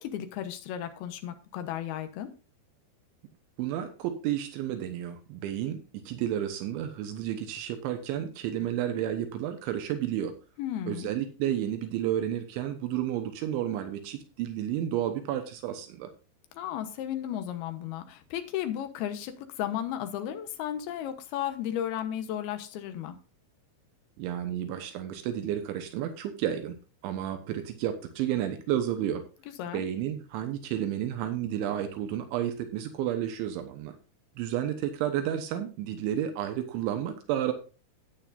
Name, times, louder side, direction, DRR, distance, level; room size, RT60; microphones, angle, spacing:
voice 1, 0.0-2.3 10.6-11.1 16.6-23.1 29.6-29.9, left 11 dB, 70° left, 8 dB, 2.6 m, -34 dB
voice 2, 3.6-10.3 10.9-16.1 24.2-26.7 27.0-29.2 29.7-33.9 34.4-37.5, right 11 dB, 80° right, 7 dB, 3.3 m, -31 dB
13.5 x 9.0 x 2.6 m, 0.35 s
omnidirectional pair, 5.4 m